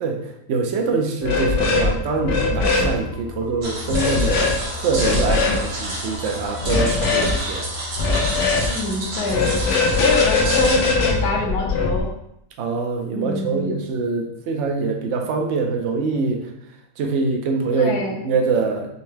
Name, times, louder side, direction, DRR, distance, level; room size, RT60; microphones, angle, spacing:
voice 1, 0.0-7.7 12.6-16.4 17.0-18.0 18.2-18.9, right 4 dB, 65° right, 3 dB, 0.7 m, -24 dB
sound 1, 1.2-1.9 2.2-2.9 3.9-4.5 4.9-5.6 6.6-7.3 8.0-8.7 9.3-12.0, left 4 dB, 85° left, 1.3 m, -21 dB
sound 2, 1.6-11.3, left 2 dB, 40° left, 0.8 m, -36 dB
sound 3, 3.6-10.9, right 2 dB, 85° right, 1.8 m, -30 dB
voice 2, 8.6-9.5 10.0-12.1 13.1-13.8 17.7-18.2, left 3 dB, 70° left, 2 dB, 1.1 m, -24 dB
5.4 x 2.1 x 3.2 m, 0.80 s
omnidirectional pair, 1.8 m